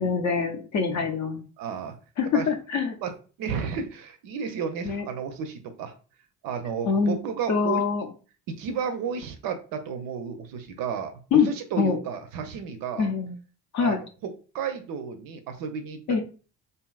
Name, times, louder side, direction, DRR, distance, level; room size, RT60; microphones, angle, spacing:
voice 1, 0.0-1.4 2.2-2.9 4.8-5.1 6.9-7.2 7.5-8.1 11.3-11.5 11.8-12.0 13.0-13.3 13.7-14.0 16.1-16.2, left 5 dB, 40° left, 5 dB, 0.5 m, -24 dB
voice 2, 1.6-2.0 2.3-2.5 3.0-3.1 3.4-5.9 6.4-7.8 8.5-13.1 13.8-14.0 14.2-16.0, right 6 dB, 50° right, 7 dB, 0.5 m, -32 dB
2.7 x 2.3 x 2.2 m, 0.37 s
hypercardioid pair, 50°, 47 cm